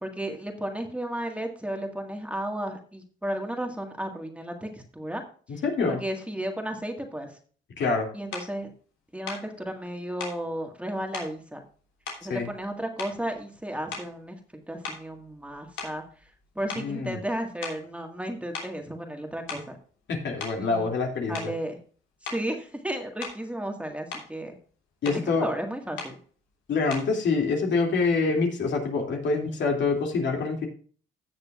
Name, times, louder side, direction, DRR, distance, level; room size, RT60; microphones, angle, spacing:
voice 1, 0.0-5.2 5.9-7.3 8.1-8.7 9.1-11.6 12.2-14.4 14.7-16.0 16.6-19.6 20.6-20.9 21.3-21.8 22.2-24.5 25.1-26.2, right 1 dB, 5° right, 3 dB, 1.8 m, -33 dB
voice 2, 5.6-6.0 7.8-8.1 12.3-12.5 16.8-17.2 20.1-21.5 25.0-25.5 26.7-30.7, left 4 dB, 65° left, 1 dB, 2.7 m, -26 dB
sound 1, 8.3-8.5 9.3-9.5 10.2-10.4 11.1-11.4 12.1-12.7 13.0-13.4 13.9-14.2 14.8-16.4 16.7-16.9 17.6-17.9 18.5-18.8 19.3-19.8 20.4-20.6 21.3-21.6 22.2-22.5 23.2-23.5 23.9-24.3 25.0-25.3 26.0-26.2 26.9-27.2, left 4 dB, 90° left, 3.1 m, -38 dB
16.5 x 6.7 x 2.5 m, 0.42 s
cardioid pair, 90°, 20 cm